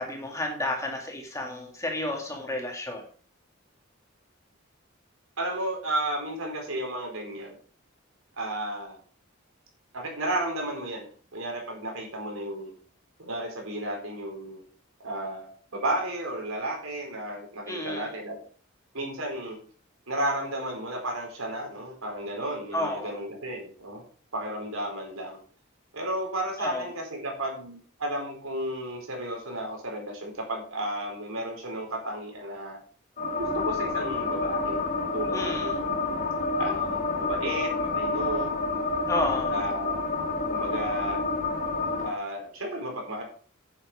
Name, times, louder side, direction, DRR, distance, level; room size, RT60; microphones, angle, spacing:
voice 1, 0.0-3.0 17.7-18.1 22.7-23.2 26.6-26.9 35.3-35.8 39.1-39.5, left 1 dB, 15° left, 1 dB, 2.4 m, -31 dB
voice 2, 5.4-7.6 8.4-9.0 9.9-11.1 11.3-12.7 13.2-14.6 15.0-18.4 18.9-19.6 20.1-24.0 24.3-25.4 25.9-32.8 33.4-34.8 35.1-35.7 36.6-38.5 39.5-40.0 40.5-41.2 42.0-43.2, right 1 dB, 90° right, 1 dB, 4.5 m, -33 dB
sound 1, 33.2-42.1, left 3 dB, 40° left, 1.4 m, -28 dB
10.0 x 7.8 x 5.0 m, 0.42 s
head